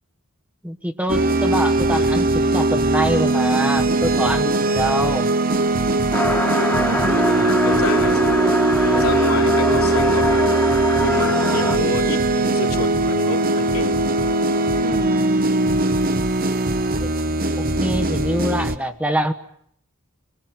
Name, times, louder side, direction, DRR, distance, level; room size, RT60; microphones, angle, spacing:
voice 1, 0.6-5.3 15.2-15.3 17.0-17.1 17.6-19.3, right 1 dB, 5° right, 8 dB, 1.2 m, -24 dB
sound 1, 1.1-18.8, right 2 dB, 40° right, 1.1 m, -20 dB
sound 2, 6.1-11.8, left 1 dB, 10° left, 1.7 m, -23 dB
voice 2, 6.7-8.4 8.8-10.5 11.0-14.0, left 3 dB, 70° left, -1 dB, 3.4 m, -29 dB
26.0 x 20.0 x 9.5 m, 0.68 s
head